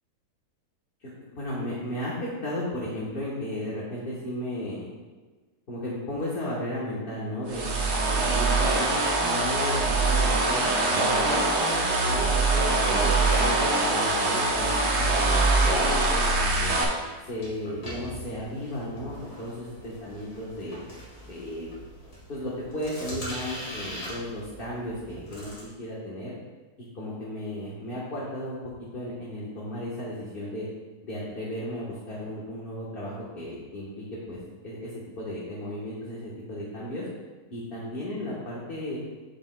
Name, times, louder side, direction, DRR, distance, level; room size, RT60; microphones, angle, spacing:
voice 1, 1.0-4.9 5.7-11.4 12.0-16.8 17.3-19.5 19.8-20.8 21.3-21.7 22.3-26.3 26.9-28.6 28.9-30.7 31.0-34.4 34.6-34.9 35.2-37.0 37.5-39.0, left 1 dB, 40° left, -6 dB, 1.4 m, -34 dB
sound 1, 7.5-16.8, right 2 dB, 90° right, 1.7 m, -23 dB
sound 2, 16.3-25.6, right 1 dB, 75° left, 2.6 m, -42 dB
8.4 x 8.2 x 2.3 m, 1.3 s
omnidirectional pair, 1.6 m